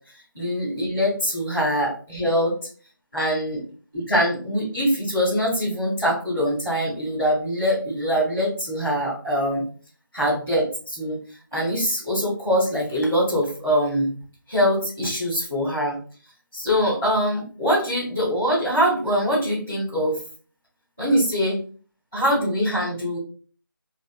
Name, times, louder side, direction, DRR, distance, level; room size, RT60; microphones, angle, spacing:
voice 1, 0.3-2.5 3.1-3.6 3.9-9.6 10.1-11.2 11.5-14.1 14.5-16.0 16.5-20.2 21.0-21.6 22.1-23.2, equal, 5° right, -17 dB, 0.4 m, -23 dB
2.9 x 2.4 x 2.3 m, 0.41 s
figure-of-eight pair, 165°, 12 cm